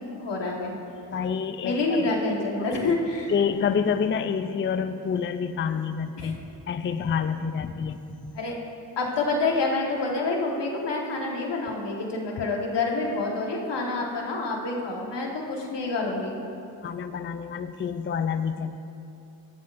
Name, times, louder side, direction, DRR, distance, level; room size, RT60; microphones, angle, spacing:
voice 1, 0.2-0.7 1.6-3.3 6.2-6.3 8.3-8.6 9.0-16.4, left 3 dB, 80° left, -1 dB, 1.5 m, -27 dB
voice 2, 1.1-1.8 2.7-3.0 3.3-6.4 6.7-8.2 16.8-18.8, left 6 dB, 30° left, 10 dB, 0.4 m, -28 dB
14.5 x 9.1 x 2.5 m, 2.7 s
cardioid pair, 55°, 42 cm